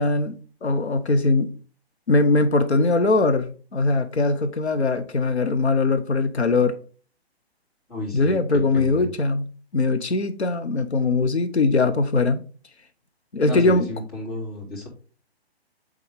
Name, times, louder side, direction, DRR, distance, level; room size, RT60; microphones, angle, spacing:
voice 1, 0.0-1.5 2.1-6.8 8.1-12.4 13.3-13.9, left 3 dB, 85° left, 0.8 m, -21 dB
voice 2, 7.9-9.1 13.4-14.9, left 2 dB, 35° left, 3.1 m, -32 dB
8.1 x 3.8 x 3.5 m
figure-of-eight pair, 135°, 32 cm